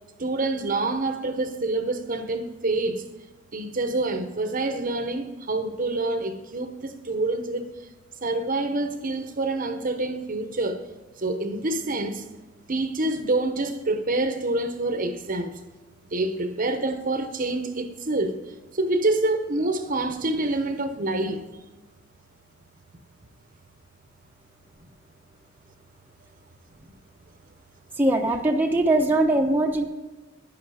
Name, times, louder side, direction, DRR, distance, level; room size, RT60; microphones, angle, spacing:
voice 1, 0.2-3.0 3.5-7.7 8.2-10.9 11.2-12.3 12.7-15.6 16.1-18.4 18.7-21.5, right 2 dB, 40° right, 1.0 m, -27 dB
voice 2, 28.0-29.9, right 2 dB, 10° right, 0.9 m, -21 dB
11.0 x 10.0 x 4.9 m
head